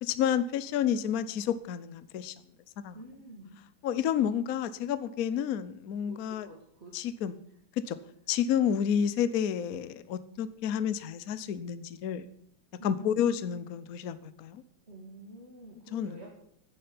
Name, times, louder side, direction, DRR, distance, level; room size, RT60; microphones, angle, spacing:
voice 1, 0.0-2.3 2.8-3.0 3.8-6.5 6.9-7.4 7.8-8.0 8.3-12.3 12.8-14.6 15.9-16.2, left 9 dB, 60° left, 14 dB, 1.0 m, -30 dB
voice 2, 2.9-3.6 6.1-6.9 12.8-13.7 14.9-16.3, right 1 dB, 30° right, -2 dB, 2.6 m, -48 dB
10.0 x 10.0 x 8.7 m, 0.68 s
omnidirectional pair, 2.2 m